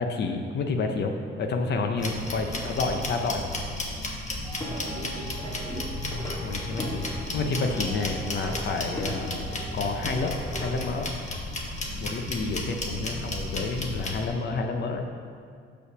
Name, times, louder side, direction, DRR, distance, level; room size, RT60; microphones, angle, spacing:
voice 1, 0.0-3.5 6.4-9.4 9.7-10.3 10.6-11.1 12.0-15.0, left 3 dB, 60° left, 4 dB, 0.8 m, -29 dB
sound 1, 2.0-14.3, left 1 dB, 35° left, 1.2 m, -34 dB
voice 2, 2.5-3.0 4.7-5.9 6.5-7.4 12.4-12.7, right 3 dB, 35° right, -4 dB, 1.9 m, -43 dB
Plucked string instrument, 4.4-10.9, left 1 dB, 20° left, 2.0 m, -38 dB
6.4 x 5.5 x 6.2 m, 2.2 s
cardioid pair, 90°, 20 cm